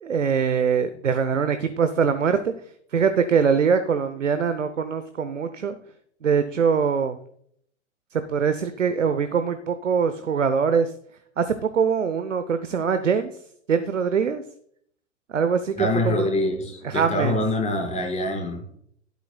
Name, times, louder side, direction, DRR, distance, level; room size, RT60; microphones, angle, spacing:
voice 1, 0.0-2.5 2.9-5.8 6.2-7.2 8.1-10.9 11.4-13.3 13.7-14.4 15.3-16.3 16.8-17.4, right 6 dB, 85° right, 10 dB, 0.9 m, -23 dB
voice 2, 15.8-18.8, left 1 dB, 20° left, 1 dB, 4.9 m, -25 dB
12.5 x 11.5 x 2.3 m, 0.64 s
figure-of-eight pair, 100°, 36 cm